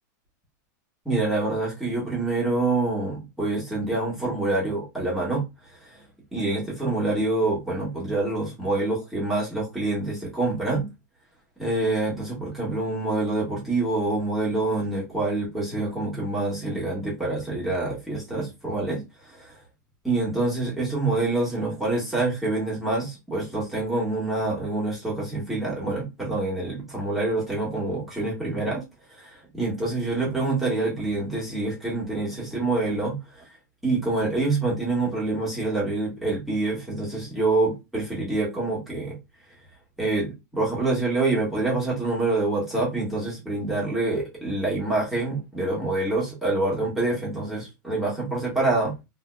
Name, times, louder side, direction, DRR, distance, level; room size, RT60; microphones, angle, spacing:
voice 1, 1.0-5.4 5.8-5.9 6.3-10.9 11.6-19.0 19.3-19.5 20.0-28.8 29.1-33.4 33.8-39.2 40.0-48.9, right 2 dB, ahead, 1.5 m, -26 dB
3.8 x 2.9 x 2.4 m
supercardioid pair, 155°, 10 cm